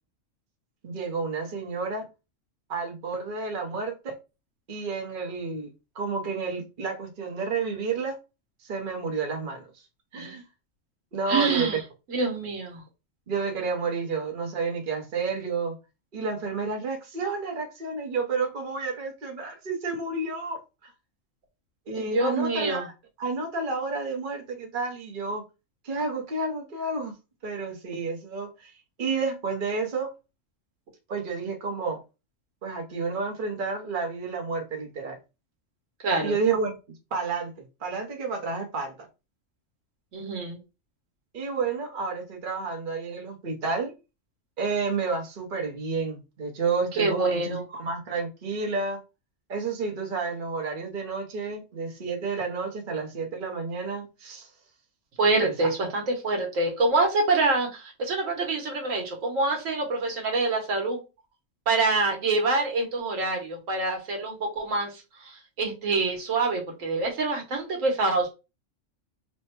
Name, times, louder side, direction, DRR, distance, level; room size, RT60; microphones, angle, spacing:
voice 1, 0.8-2.0 2.7-4.2 4.7-5.7 5.9-8.2 8.6-9.7 10.1-10.4 11.1-11.7 13.3-15.8 16.1-20.9 21.9-22.9 23.2-25.4 25.8-27.1 27.4-28.7 29.0-30.1 31.1-32.0 32.6-35.2 36.2-36.8 37.1-37.5 37.8-39.1 41.3-43.9 44.6-49.0 49.5-54.5 55.4-55.7, right 4 dB, 45° right, 1.0 m, -30 dB
voice 2, 11.3-11.8 12.1-12.8 21.9-22.8 36.0-36.4 40.1-40.6 46.9-47.6 55.2-61.0 61.7-68.3, right 3 dB, 85° right, 1.4 m, -26 dB
3.3 x 2.2 x 4.3 m
omnidirectional pair, 1.3 m